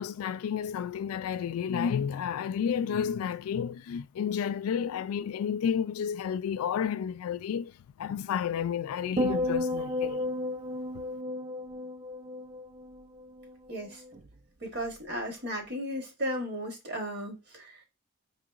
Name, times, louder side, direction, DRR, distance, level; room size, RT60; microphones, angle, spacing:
voice 1, 0.0-7.7 8.0-10.2, left 8 dB, 85° left, 0.3 m, -31 dB
sound 1, 9.2-13.6 13.9-14.3, left 1 dB, 35° right, 0.3 m, -33 dB
voice 2, 13.7-14.0 14.6-17.8, equal, 50° right, 1.2 m, -35 dB
4.3 x 2.9 x 2.4 m
head